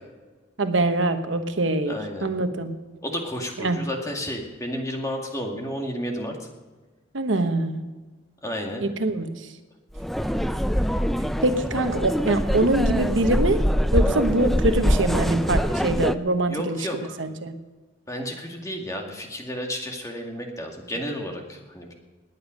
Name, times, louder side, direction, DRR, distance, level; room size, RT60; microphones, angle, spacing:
voice 1, 0.6-2.8 3.6-3.8 7.1-7.8 8.8-9.3 11.4-13.6 13.9-16.8 17.2-17.5, right 2 dB, 75° right, 8 dB, 1.1 m, -24 dB
voice 2, 1.9-2.4 3.0-6.5 8.4-8.9 16.5-17.2 18.1-22.0, equal, 15° left, 1 dB, 2.1 m, -32 dB
sound 1, 10.0-16.2, equal, ahead, 0.4 m, -23 dB
19.5 x 9.2 x 5.2 m, 1.3 s
head